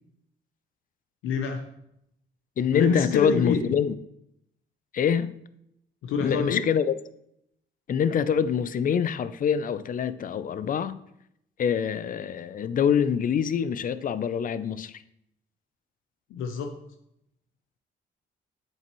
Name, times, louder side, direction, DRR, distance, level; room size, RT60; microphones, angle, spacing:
voice 1, 1.2-1.6 2.7-3.7 6.0-6.6 16.3-16.8, left 6 dB, 85° left, 0.7 m, -27 dB
voice 2, 2.6-3.9 4.9-5.3 6.2-6.9 7.9-11.0 11.6-15.0, left 7 dB, 45° left, 0.4 m, -25 dB
7.7 x 7.5 x 3.0 m
cardioid pair, 90°, 20 cm